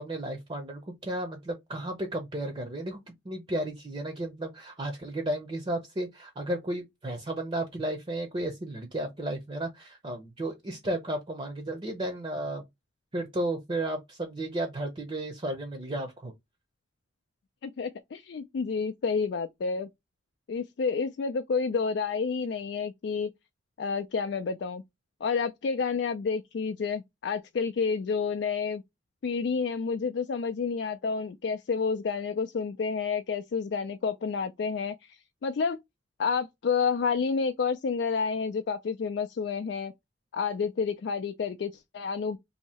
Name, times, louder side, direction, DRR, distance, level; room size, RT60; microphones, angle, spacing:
voice 1, 0.0-12.6 13.1-16.3, right 1 dB, 25° right, 0.6 m, -33 dB
voice 2, 17.6-19.9 20.5-23.3 23.8-24.8 25.2-28.8 29.2-35.8 36.2-39.9 40.3-42.4, left 5 dB, 60° left, 0.3 m, -29 dB
2.8 x 2.7 x 4.1 m
head